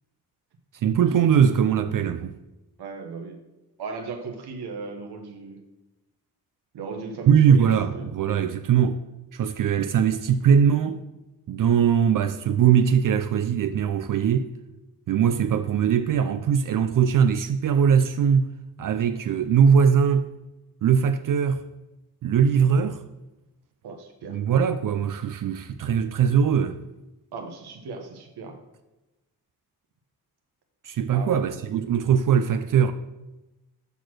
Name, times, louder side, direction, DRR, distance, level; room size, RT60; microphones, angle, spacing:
voice 1, 0.8-2.3 7.3-9.0 9.3-11.0 11.5-14.5 15.1-18.5 18.8-20.3 20.8-21.6 22.2-23.0 24.3-26.8 30.8-32.9, right 7 dB, 60° right, 0.5 m, -21 dB
voice 2, 2.8-3.3 3.8-5.6 6.7-8.1 23.8-24.4 27.3-28.5 31.1-31.4, right 4 dB, 90° right, 1.1 m, -36 dB
6.8 x 4.2 x 6.2 m
cardioid pair, 70°, 38 cm